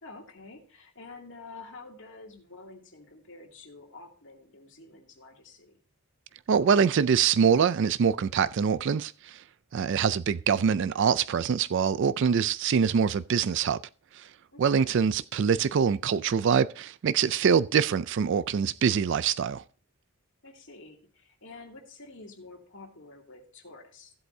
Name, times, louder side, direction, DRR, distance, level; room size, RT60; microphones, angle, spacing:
voice 1, 0.0-5.8 14.5-15.0 20.4-24.1, left 3 dB, 60° left, 2.5 m, -48 dB
voice 2, 6.5-9.4 9.7-13.8 14.1-14.3 14.6-19.6, right 6 dB, 55° right, 0.3 m, -24 dB
15.5 x 7.9 x 2.7 m
head